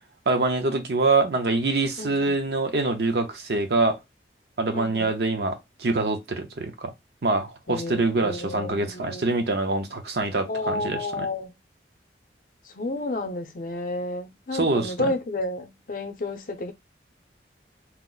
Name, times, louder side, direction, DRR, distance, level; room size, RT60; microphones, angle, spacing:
voice 1, 0.3-4.0 4.6-6.9 7.2-11.3 14.5-15.1, right 3 dB, 65° right, 0.7 m, -25 dB
voice 2, 2.0-2.4 4.7-5.1 7.7-9.4 10.5-11.5 12.7-16.7, left 2 dB, 50° left, 0.6 m, -31 dB
2.9 x 2.0 x 3.7 m
head